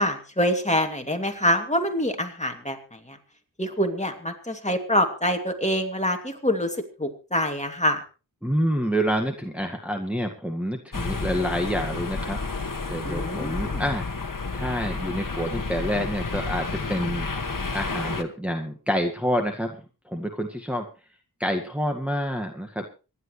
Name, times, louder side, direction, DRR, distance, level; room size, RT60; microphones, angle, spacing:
voice 1, 0.0-2.8 3.1-3.2 3.6-6.7 7.0-8.0 13.0-13.8, equal, 15° left, 4 dB, 2.6 m, -25 dB
voice 2, 8.4-12.4 12.9-17.3 17.7-19.8 20.1-20.9 21.4-22.9, equal, 5° right, 2 dB, 1.9 m, -28 dB
sound 1, 10.9-18.2, left 3 dB, 55° left, 1.6 m, -30 dB
25.5 x 11.0 x 3.3 m, 0.33 s
wide cardioid pair, 65°, 39 cm